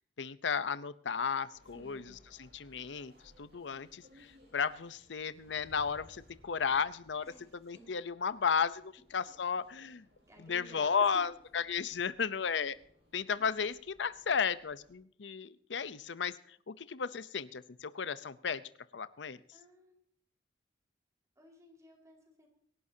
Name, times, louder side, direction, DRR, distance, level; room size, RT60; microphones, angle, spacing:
voice 1, 0.2-2.0 2.5-3.1 3.4-7.2 7.6-10.1 10.5-12.8 13.1-18.6 18.9-19.4, left 6 dB, 80° left, 15 dB, 0.7 m, -34 dB
sound 1, 1.5-14.9, equal, 70° right, 7.8 m, -63 dB
voice 2, 1.7-2.2 7.2-8.0 10.2-11.2 19.5-20.0 21.4-22.5, left 1 dB, 20° right, 1 dB, 4.5 m, -56 dB
25.0 x 11.5 x 2.8 m, 0.63 s
head